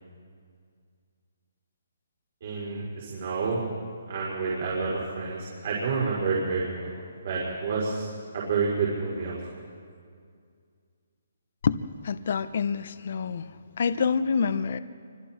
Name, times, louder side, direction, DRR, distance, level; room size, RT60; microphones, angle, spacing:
voice 1, 2.4-3.6 4.1-6.9 7.2-8.1 8.3-9.4, right 4 dB, 45° right, -4 dB, 4.9 m, -29 dB
voice 2, 11.6-13.4 13.8-14.8, left 6 dB, 50° left, 13 dB, 0.9 m, -27 dB
28.5 x 25.0 x 4.5 m, 2.2 s
hypercardioid pair, 170°, 0 cm